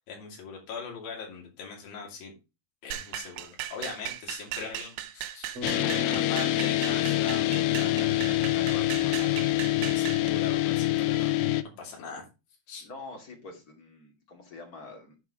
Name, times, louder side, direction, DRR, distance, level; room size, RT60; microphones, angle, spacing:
voice 1, 0.1-2.3 2.8-9.4 9.8-11.3 11.8-12.2 12.7-12.9, left 5 dB, 70° left, -1 dB, 4.4 m, -40 dB
sound 1, 2.9-10.3, right 13 dB, 80° right, 2.6 m, -38 dB
sound 2, 5.6-11.6, left 16 dB, 85° left, 1.9 m, -26 dB
Bass guitar, 5.6-9.9, left 2 dB, 45° right, 3.0 m, -41 dB
voice 2, 12.8-15.2, left 3 dB, 30° left, 2 dB, 2.2 m, -46 dB
9.3 x 4.9 x 4.8 m, 0.28 s
omnidirectional pair, 4.5 m